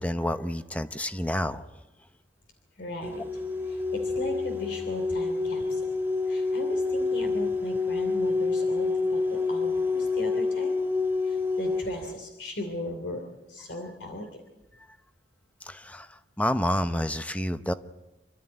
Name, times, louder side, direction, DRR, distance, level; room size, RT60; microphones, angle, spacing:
voice 1, 0.0-1.7 15.6-16.1 16.4-17.7, left 1 dB, 10° left, 10 dB, 0.8 m, -29 dB
voice 2, 2.8-3.2 3.6-5.8 6.3-10.7 11.2-13.2 13.5-14.4, left 1 dB, 70° left, 4 dB, 2.9 m, -38 dB
sound 1, 3.0-12.1, left 3 dB, 10° right, 2.4 m, -28 dB
27.5 x 13.5 x 9.7 m, 1.1 s
head